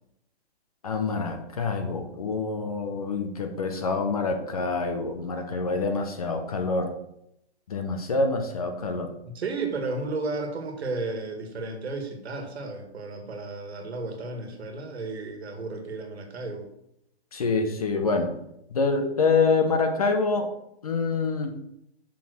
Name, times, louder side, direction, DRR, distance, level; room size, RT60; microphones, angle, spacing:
voice 1, 0.8-6.9 7.7-9.1 17.3-18.3 18.7-20.5 20.8-21.6, left 4 dB, 35° left, 5 dB, 0.7 m, -26 dB
voice 2, 9.2-16.7, right 3 dB, 70° right, 5 dB, 1.7 m, -33 dB
5.8 x 4.6 x 6.2 m, 0.80 s
hypercardioid pair, 180°, 33 cm